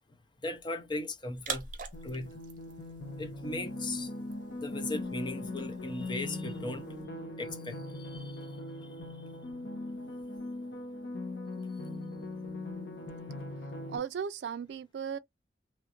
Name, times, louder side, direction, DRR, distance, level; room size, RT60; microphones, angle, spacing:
voice 1, 0.1-1.7 2.0-2.4 3.2-4.1 4.5-7.1 7.4-9.4, left 2 dB, 25° left, 0.6 m, -39 dB
sound 1, 1.3-7.0, right 6 dB, 50° right, 0.7 m, -46 dB
sound 2, 1.9-14.0, left 2 dB, 70° left, 0.9 m, -40 dB
voice 2, 13.9-15.2, right 7 dB, 70° right, 0.3 m, -36 dB
3.1 x 2.4 x 2.9 m
head